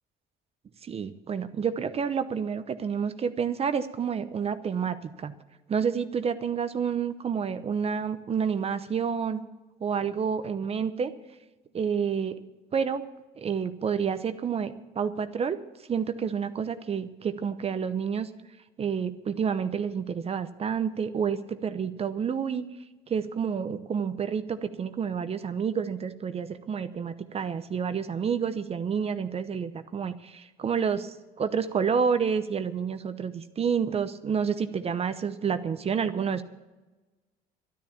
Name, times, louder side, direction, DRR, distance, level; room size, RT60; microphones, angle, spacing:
voice 1, 0.8-5.3 5.7-9.4 9.8-11.1 11.7-12.4 12.7-13.0 13.4-15.6 15.9-18.3 18.8-22.6 23.1-36.4, right 6 dB, 35° right, 11 dB, 0.8 m, -29 dB
12.5 x 10.5 x 7.2 m, 1.1 s
cardioid pair, 110°, 17 cm